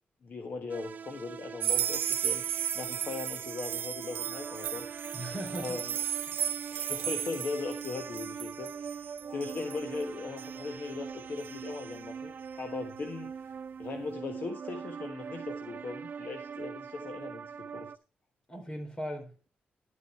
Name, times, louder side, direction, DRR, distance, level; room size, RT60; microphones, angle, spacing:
voice 1, 0.2-4.8 5.6-6.0 6.7-13.3 13.8-17.4 17.7-17.9, left 4 dB, 55° left, 1.3 m, -39 dB
sound 1, 0.7-18.0, right 6 dB, 50° right, 0.5 m, -42 dB
sound 2, 1.6-12.0, right 9 dB, 85° right, 1.1 m, -35 dB
voice 2, 5.1-5.8 6.3-6.4 18.5-19.5, equal, 25° left, 3.6 m, -39 dB
11.5 x 8.6 x 4.5 m
cardioid pair, 105°, 4 cm